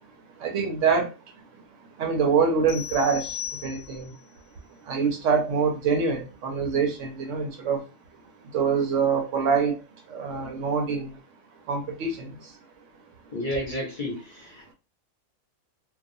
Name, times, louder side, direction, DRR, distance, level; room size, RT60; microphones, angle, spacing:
voice 1, 0.4-1.1 2.0-3.4 3.6-4.1 4.9-7.8 8.5-9.7 10.1-11.1 11.7-12.3, right 5 dB, 70° right, 0.9 m, -25 dB
sound 1, 2.7-4.2, left 10 dB, 65° left, 1.0 m, -37 dB
voice 2, 13.3-14.7, left 1 dB, 40° left, 0.8 m, -31 dB
2.4 x 2.3 x 2.5 m
omnidirectional pair, 1.4 m